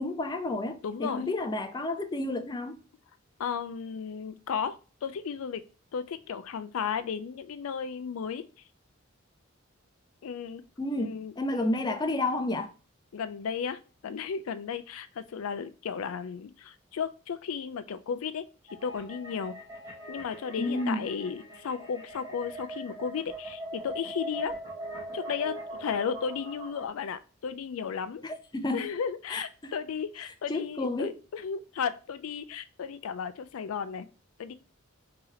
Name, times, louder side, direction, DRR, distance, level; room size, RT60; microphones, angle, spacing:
voice 1, 0.0-2.7 10.8-12.7 20.6-21.1 28.2-28.8 29.3-29.7 30.5-31.1, left 2 dB, 20° left, 0.4 m, -31 dB
voice 2, 0.8-1.3 3.4-5.6 5.9-8.5 10.2-10.6 11.0-11.8 13.1-18.5 18.8-19.6 20.1-24.6 25.1-28.2 28.7-34.1 34.4-34.5, left 6 dB, 85° left, 0.4 m, -34 dB
sound 1, 18.7-26.9, right 1 dB, 15° right, 1.5 m, -41 dB
3.9 x 2.9 x 4.1 m
head